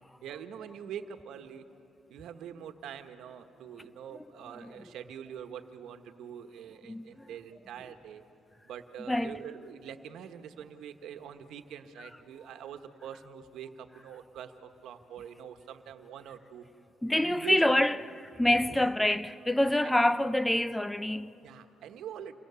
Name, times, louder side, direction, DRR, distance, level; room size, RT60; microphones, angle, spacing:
voice 1, 0.2-1.6 2.1-8.2 8.6-16.6 17.1-17.8 18.7-18.9 19.6-19.9 21.4-22.3, right 8 dB, 80° right, 1.3 m, -44 dB
voice 2, 6.9-7.3 9.1-9.4 12.0-12.1 17.0-21.3, left 1 dB, 10° left, 0.5 m, -27 dB
28.5 x 22.0 x 7.0 m
cardioid pair, 105°, 0 cm